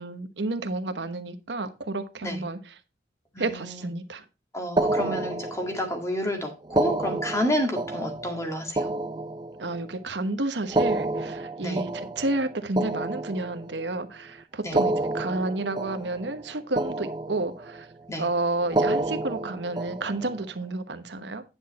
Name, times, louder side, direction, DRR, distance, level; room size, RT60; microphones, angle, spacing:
voice 1, 0.0-2.7 3.4-4.2 9.6-17.9 18.2-21.4, right 2 dB, 70° right, 9 dB, 1.1 m, -31 dB
voice 2, 3.3-3.9 4.5-8.9 11.6-11.8 14.6-14.8 18.1-18.3, equal, 15° left, 3 dB, 1.9 m, -30 dB
sound 1, 4.8-6.0 6.6-10.0 10.6-13.9 14.6-16.5 16.8-17.8 18.6-20.5, right 2 dB, 25° right, 0.5 m, -29 dB
10.0 x 6.2 x 4.1 m, 0.28 s
head